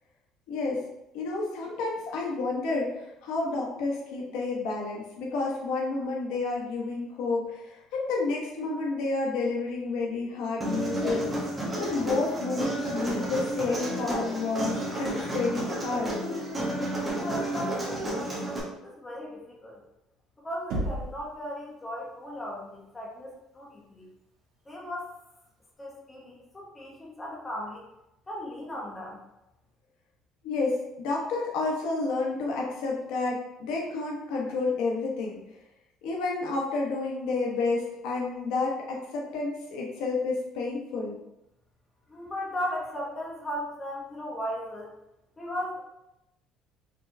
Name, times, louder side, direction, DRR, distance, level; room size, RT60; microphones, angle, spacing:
voice 1, 0.5-0.8 1.1-11.3 11.8-16.1 30.4-35.4 36.0-41.1, left 3 dB, 75° left, -2 dB, 0.8 m, -30 dB
Human voice, 10.6-18.6, right 1 dB, 15° right, 1.0 m, -31 dB
voice 2, 16.6-19.8 20.4-24.1 24.7-25.1 25.8-27.8 28.3-29.2 42.1-44.9 45.4-45.8, left 1 dB, 10° left, -3 dB, 0.7 m, -37 dB
Knock, 20.7-21.3, right 1 dB, 65° right, 0.9 m, -31 dB
4.4 x 3.2 x 2.6 m, 0.87 s
cardioid pair, 170°, 0 cm